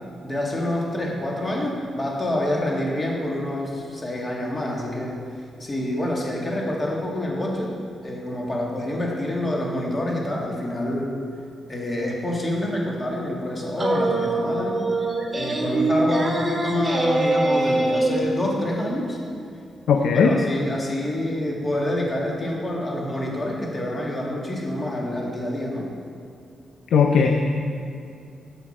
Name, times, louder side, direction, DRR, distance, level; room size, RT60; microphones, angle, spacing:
voice 1, 0.2-5.2 5.6-7.7 8.0-11.2 11.7-14.8 15.3-19.2 20.0-25.9, left 1 dB, 25° left, -2 dB, 1.9 m, -27 dB
sound 1, 13.8-18.2, right 2 dB, 15° right, 1.7 m, -23 dB
voice 2, 19.9-20.3 26.9-27.3, left 6 dB, 80° left, 3 dB, 0.6 m, -17 dB
12.5 x 6.9 x 4.3 m, 2.5 s
cardioid pair, 100°, 0 cm